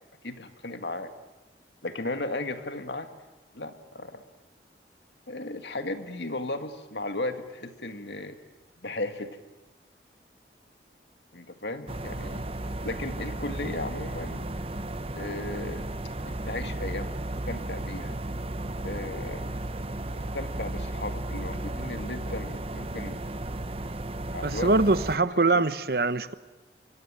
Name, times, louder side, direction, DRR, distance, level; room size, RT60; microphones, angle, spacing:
voice 1, 0.2-1.1 1.8-3.1 3.5-4.2 5.3-8.4 8.8-9.3 11.3-12.4 12.8-14.5 15.1-15.9 16.3-17.1 17.5-18.2 18.8-19.6 20.2-23.2 24.3-24.8 25.5-25.6, left 2 dB, 80° left, 2.0 m, -35 dB
sound 1, 11.9-25.2, right 1 dB, 35° right, 0.8 m, -34 dB
voice 2, 24.4-26.3, right 3 dB, 60° right, 1.0 m, -23 dB
25.0 x 24.0 x 9.0 m
head